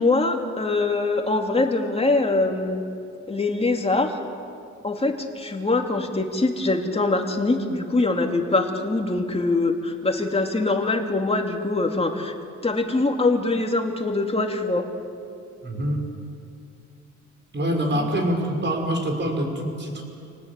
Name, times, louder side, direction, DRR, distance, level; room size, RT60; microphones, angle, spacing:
voice 1, 0.0-2.8 3.3-4.2 4.8-12.3 12.6-14.9 17.9-18.1, left 2 dB, 20° left, 3 dB, 2.9 m, -23 dB
voice 2, 15.6-16.0 17.5-20.0, equal, 35° right, 2 dB, 5.7 m, -25 dB
28.0 x 19.0 x 8.5 m, 2.5 s
cardioid pair, 90°, 30 cm